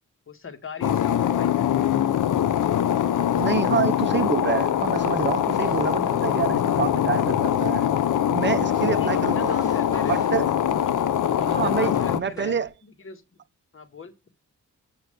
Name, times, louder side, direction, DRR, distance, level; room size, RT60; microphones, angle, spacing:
voice 1, 0.3-2.0 3.2-3.6 9.0-10.2 10.8-11.0 11.4-13.4 13.7-14.1, left 5 dB, 45° left, 1.8 m, -39 dB
sound 1, 0.8-12.2, left 10 dB, 85° left, 0.8 m, -23 dB
voice 2, 3.3-7.9 8.3-9.6 10.0-10.4 11.5-12.7, right 7 dB, 40° right, 0.8 m, -27 dB
sound 2, 4.8-12.7, left 1 dB, 10° left, 4.3 m, -45 dB
8.7 x 5.8 x 6.7 m
cardioid pair, 105°, 30 cm